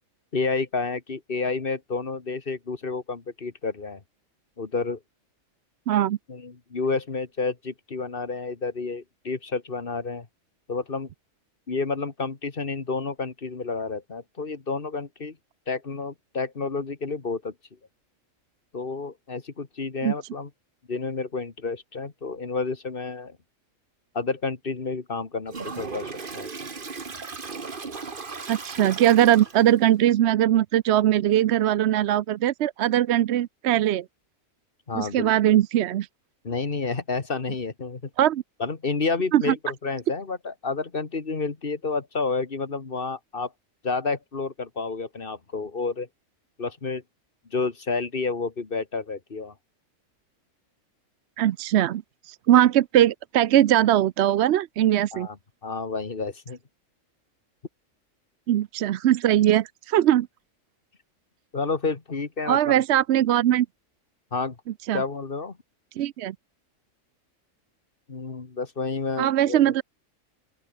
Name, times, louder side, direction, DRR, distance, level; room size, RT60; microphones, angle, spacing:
voice 1, 0.3-4.0 4.6-5.0 6.3-10.3 10.7-11.1 11.7-15.4 15.7-17.5 18.7-20.5 20.9-23.4 24.1-26.5 34.9-35.3 36.4-38.1 38.6-43.5 43.8-46.1 46.6-47.0 47.5-49.5 55.1-55.4 55.6-56.6 61.5-62.8 64.3-64.6 64.9-65.6 68.1-69.7, left 4 dB, 40° left, 2.0 m, -30 dB
voice 2, 5.9-6.2 20.0-20.1 28.5-34.0 34.9-36.1 38.2-38.4 39.3-39.5 51.4-52.0 52.3-55.3 58.5-60.3 62.4-63.7 64.9-65.0 66.0-66.3 69.2-69.8, right 12 dB, 65° right, 0.8 m, -21 dB
Toilet flush, 25.5-29.8, right 4 dB, 40° right, 1.7 m, -36 dB
open air
omnidirectional pair, 1.4 m